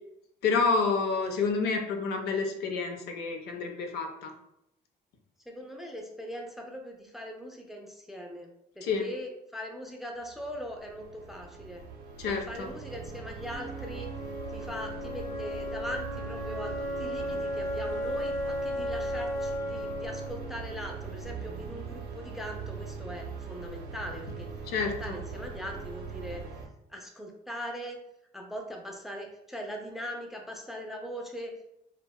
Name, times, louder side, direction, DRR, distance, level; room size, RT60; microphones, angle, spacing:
voice 1, 0.4-4.3 8.8-9.1 12.2-12.7 24.7-25.2, left 4 dB, 75° left, 4 dB, 0.5 m, -29 dB
voice 2, 5.5-8.5 8.8-11.8 12.2-14.1 14.5-24.5 24.8-26.4 26.9-28.0 28.3-31.7, equal, ahead, 1 dB, 0.3 m, -40 dB
sound 1, 10.2-26.7, right 5 dB, 65° right, 0.5 m, -41 dB
Wind instrument woodwind instrument, 13.4-21.4, equal, 40° left, 0.7 m, -35 dB
2.6 x 2.1 x 2.2 m, 0.83 s
cardioid pair, 110°, 17 cm